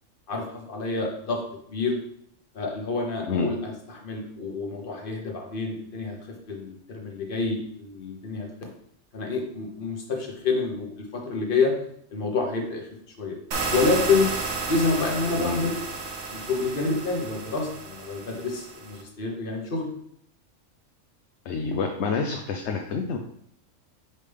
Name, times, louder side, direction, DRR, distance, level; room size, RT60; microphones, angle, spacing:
voice 1, 0.3-1.4 1.7-2.0 2.5-8.7 9.1-11.7 12.1-12.9 13.2-13.4 13.7-14.3 14.7-15.8 16.3-19.9 22.2-22.3, left 3 dB, 45° left, 1 dB, 1.3 m, -28 dB
sound 1, 13.5-19.0, right 4 dB, 75° right, 1.3 m, -32 dB
voice 2, 21.5-23.2, left 4 dB, 65° left, 3 dB, 0.9 m, -28 dB
5.6 x 4.9 x 3.4 m, 0.69 s
omnidirectional pair, 1.4 m